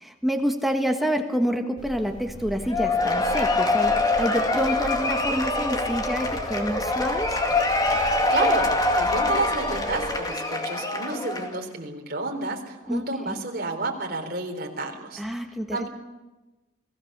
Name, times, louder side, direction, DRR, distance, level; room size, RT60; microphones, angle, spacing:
voice 1, 0.0-7.4 12.9-13.4 15.2-15.9, equal, ahead, 4 dB, 1.5 m, -28 dB
sound 1, 1.8-10.2, equal, 65° left, 4.6 m, -40 dB
Cheering / Applause / Crowd, 2.7-11.6, left 2 dB, 20° left, 2.2 m, -24 dB
voice 2, 8.3-15.2 15.7-15.9, right 2 dB, 50° right, 2 dB, 3.7 m, -30 dB
29.0 x 17.5 x 6.8 m, 1.1 s
head